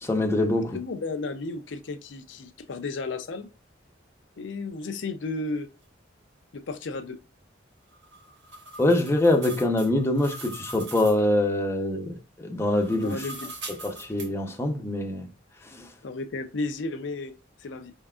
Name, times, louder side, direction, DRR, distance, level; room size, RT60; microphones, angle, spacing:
voice 1, 0.0-0.8 8.8-13.2 13.8-15.3 15.7-15.9, left 1 dB, 15° left, 0.7 m, -24 dB
voice 2, 0.7-3.5 4.4-5.7 6.5-7.2 12.9-13.5 16.0-17.3 17.6-17.9, left 3 dB, 65° left, 0.5 m, -33 dB
sound 1, 7.9-11.3 12.6-14.3, right 2 dB, 65° right, 1.3 m, -42 dB
5.1 x 3.6 x 2.3 m
head